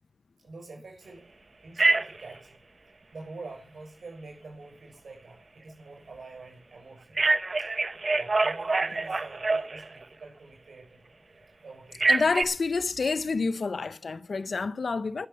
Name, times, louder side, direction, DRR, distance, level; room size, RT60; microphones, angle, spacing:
voice 1, 0.4-1.3 1.6-2.6 3.1-7.2 7.6-7.7 8.1-11.1 11.6-12.3, right 3 dB, 90° right, 6.8 m, -46 dB
Telephone, 1.8-2.3 7.2-10.0 12.0-12.4, right 3 dB, 60° right, 0.8 m, -25 dB
voice 2, 12.1-15.3, left 4 dB, 80° left, 0.7 m, -28 dB
11.5 x 6.9 x 8.5 m
wide cardioid pair, 65°, 0 cm